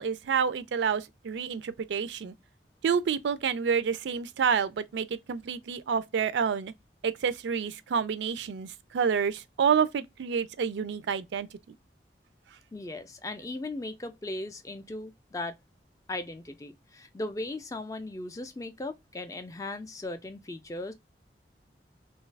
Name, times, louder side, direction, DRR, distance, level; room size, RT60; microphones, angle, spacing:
voice 1, 0.0-2.3 2.8-6.7 7.0-11.8, right 6 dB, 85° right, 0.4 m, -28 dB
voice 2, 12.7-15.5 16.1-20.9, left 2 dB, 20° left, 0.3 m, -37 dB
2.6 x 2.3 x 3.2 m
head